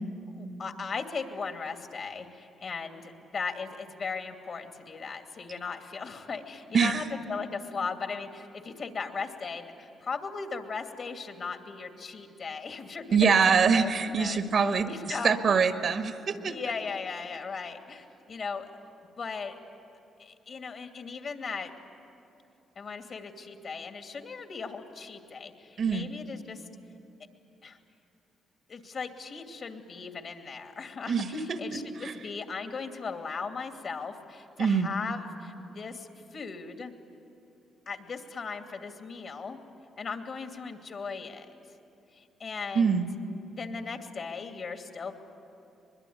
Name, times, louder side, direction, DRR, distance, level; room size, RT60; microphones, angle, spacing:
voice 1, 0.3-13.9 14.2-14.4 14.8-15.3 16.5-18.7 19.2-19.6 20.2-21.7 22.8-26.7 27.6-27.8 28.7-36.9 37.9-39.6 40.0-41.5 42.1-43.1 43.5-45.1, left 5 dB, 55° left, 5 dB, 2.5 m, -38 dB
voice 2, 13.1-16.6 25.8-26.1 31.1-32.1 34.6-34.9 42.7-43.1, right 5 dB, 60° right, 7 dB, 1.6 m, -25 dB
23.5 x 21.5 x 9.6 m, 2.7 s
supercardioid pair, 55°, 0 cm